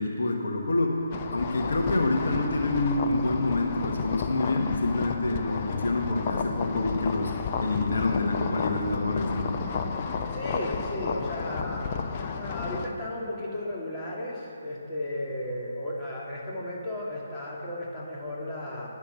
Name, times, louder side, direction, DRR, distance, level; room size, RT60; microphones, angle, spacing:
voice 1, 0.0-9.6, left 2 dB, 70° left, 2 dB, 1.1 m, -27 dB
sound 1, 1.1-12.9, left 5 dB, 35° left, 0.7 m, -32 dB
voice 2, 10.3-18.9, left 1 dB, 15° left, -5 dB, 2.2 m, -34 dB
10.5 x 6.8 x 7.6 m, 2.6 s
figure-of-eight pair, 145°, 0 cm